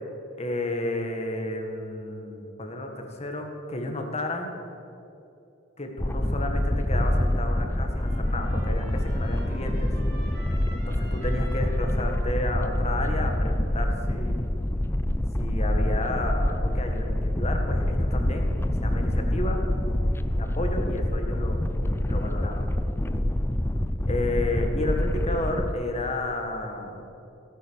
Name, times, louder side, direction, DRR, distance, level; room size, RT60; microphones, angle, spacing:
voice 1, 0.3-4.5 5.8-9.9 10.7-14.4 15.4-18.5 18.8-19.6 20.4-22.7 24.1-27.0, left 1 dB, 35° left, 3 dB, 1.8 m, -32 dB
sound 1, 6.0-25.7, left 1 dB, 10° left, 0.5 m, -26 dB
Trumpet, 7.7-14.3, right 1 dB, 55° right, 2.8 m, -48 dB
16.5 x 9.9 x 6.5 m, 2.8 s
head